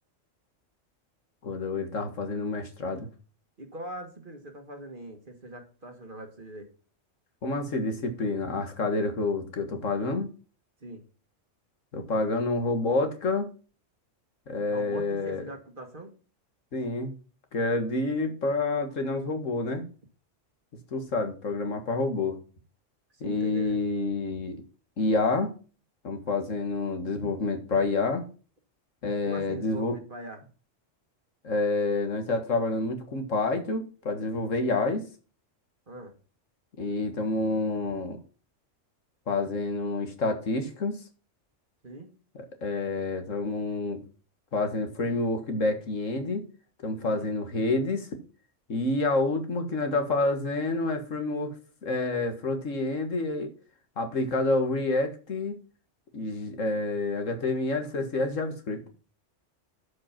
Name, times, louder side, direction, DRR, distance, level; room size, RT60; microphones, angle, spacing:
voice 1, 1.4-3.1 7.4-10.3 11.9-13.5 14.5-15.4 16.7-17.1 17.5-19.8 20.9-22.4 23.2-24.6 25.0-25.5 26.0-28.2 29.0-29.9 31.4-35.0 36.8-38.2 39.3-41.0 42.4-44.0 44.5-46.4 46.8-48.1 48.7-51.5 51.8-53.5 54.0-55.6 56.1-58.8, left 3 dB, 80° left, 6 dB, 2.0 m, -28 dB
voice 2, 3.6-6.7 10.8-11.0 14.7-16.1 23.1-23.8 29.2-30.4 35.9-36.1 41.8-42.1 47.0-47.3, right 1 dB, 40° right, 5 dB, 1.7 m, -41 dB
11.5 x 5.2 x 5.9 m, 0.38 s
omnidirectional pair, 1.3 m